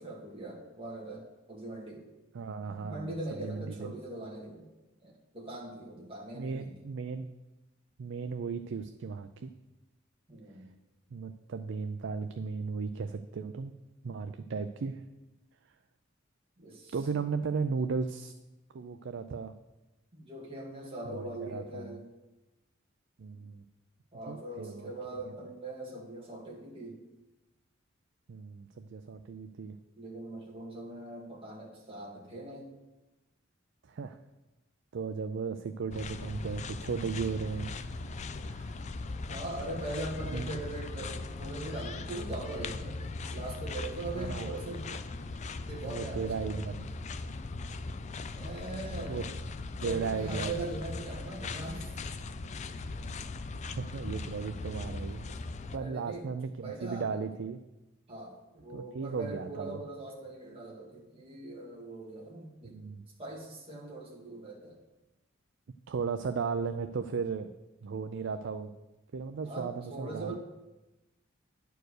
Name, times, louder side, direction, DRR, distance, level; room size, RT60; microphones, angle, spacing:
voice 1, 0.0-2.1 2.8-4.7 5.0-6.7 10.3-10.6 16.6-16.9 20.1-22.0 24.1-27.0 30.0-32.7 39.3-43.0 43.3-45.0 45.7-46.7 48.3-49.2 49.8-52.0 55.3-56.3 56.6-57.2 58.1-62.8 63.2-64.8 69.4-70.3, right 2 dB, 30° right, -3 dB, 2.0 m, -41 dB
voice 2, 2.3-3.1 3.4-3.9 6.3-7.3 8.0-9.5 11.1-13.7 14.0-15.0 16.9-18.3 18.7-19.5 21.1-21.2 21.5-22.0 23.2-23.6 24.3-24.9 28.3-29.8 33.9-34.2 34.9-37.9 38.5-38.8 40.3-40.5 44.2-44.5 45.8-46.9 49.1-49.2 49.8-50.7 53.6-55.3 55.7-57.6 58.7-59.8 62.6-63.0 65.9-67.5 67.8-68.7 69.1-70.3, right 5 dB, 65° right, 9 dB, 0.4 m, -35 dB
sound 1, 35.9-55.8, left 3 dB, 35° left, 0.4 m, -39 dB
10.5 x 4.6 x 6.5 m, 1.0 s
head